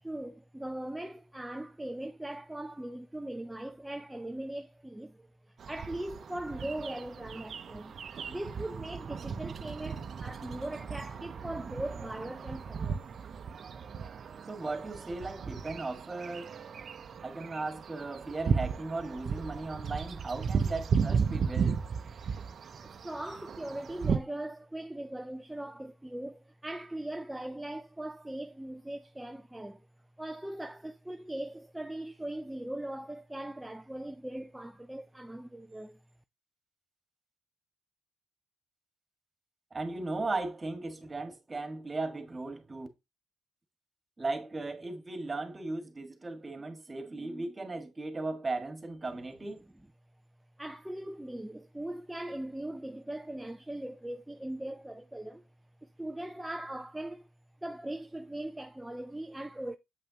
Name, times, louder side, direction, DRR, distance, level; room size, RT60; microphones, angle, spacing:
voice 1, 0.0-7.9 8.3-13.0 22.8-29.9 30.2-36.0 50.6-55.4 55.8-57.3 57.6-59.8, right 1 dB, 10° right, 0.5 m, -40 dB
sound 1, 5.6-24.2, right 6 dB, 50° right, 0.7 m, -35 dB
voice 2, 14.5-16.5 17.2-21.8 39.7-42.9 44.2-49.6, right 3 dB, 25° right, 1.8 m, -37 dB
8.0 x 5.5 x 2.9 m
cardioid pair, 90°, 0 cm